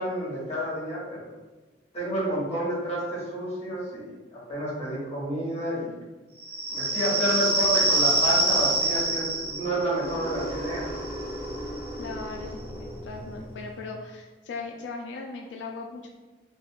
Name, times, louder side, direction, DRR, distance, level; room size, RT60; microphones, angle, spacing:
voice 1, 0.0-1.3 1.9-5.9 6.7-10.9, right 1 dB, 35° left, -5 dB, 1.0 m, -30 dB
sound 1, 6.4-13.7, right 2 dB, 15° right, 1.3 m, -27 dB
voice 2, 12.0-16.1, left 4 dB, 85° left, 1 dB, 0.3 m, -38 dB
2.4 x 2.3 x 3.4 m, 1.2 s
head